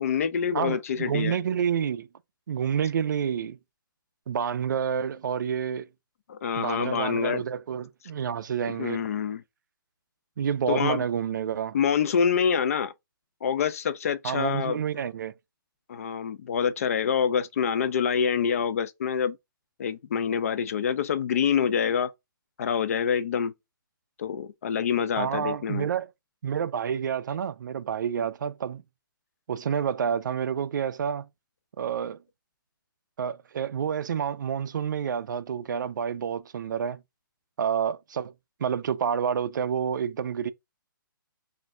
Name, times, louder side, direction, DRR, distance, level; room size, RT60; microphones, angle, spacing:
voice 1, 0.0-1.4 6.3-7.4 8.7-9.4 10.7-11.0 11.7-12.9 13.4-14.8 15.9-19.4 19.8-22.1 22.6-23.5 24.2-25.9, left 7 dB, 40° left, 0.4 m, -26 dB
voice 2, 0.5-2.1 2.5-3.6 4.3-5.9 6.5-9.0 10.4-11.8 14.2-15.3 25.2-26.1 26.4-28.8 29.5-31.3 31.8-32.2 33.2-37.0 37.6-38.3 38.6-40.5, right 8 dB, 55° right, 0.4 m, -29 dB
4.0 x 2.6 x 3.5 m
hypercardioid pair, 160°, 12 cm